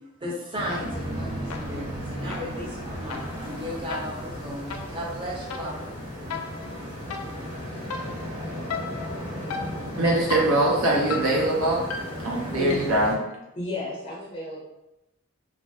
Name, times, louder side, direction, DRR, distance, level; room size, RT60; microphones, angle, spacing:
voice 1, 0.2-5.8, equal, 25° right, -3 dB, 0.6 m, -35 dB
sound 1, 0.5-13.1, equal, 60° right, 1.3 m, -36 dB
sound 2, 0.7-1.2 1.5-13.1, left 4 dB, 85° left, 0.4 m, -38 dB
sound 3, 0.8-6.1, right 2 dB, 45° right, 1.0 m, -38 dB
voice 2, 10.0-11.8 12.2-13.1, right 1 dB, 80° right, -2 dB, 0.6 m, -22 dB
voice 3, 13.5-14.7, left 1 dB, 30° left, -5 dB, 0.5 m, -33 dB
3.0 x 2.3 x 2.6 m, 0.92 s
head